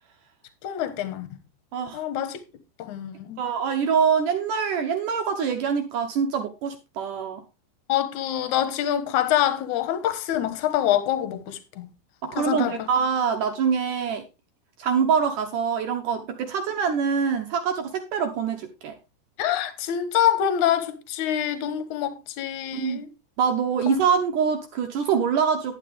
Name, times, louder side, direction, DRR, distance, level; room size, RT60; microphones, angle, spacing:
voice 1, 0.6-1.3 1.9-2.4 2.8-3.4 7.9-11.9 12.4-12.9 19.4-23.1 23.9-24.0, left 11 dB, 60° left, 2.2 m, -25 dB
voice 2, 1.7-2.0 3.4-7.4 12.2-14.2 14.8-19.0 22.7-23.0 23.4-25.8, right 6 dB, 70° right, 2.0 m, -24 dB
11.0 x 9.8 x 3.4 m
omnidirectional pair, 4.9 m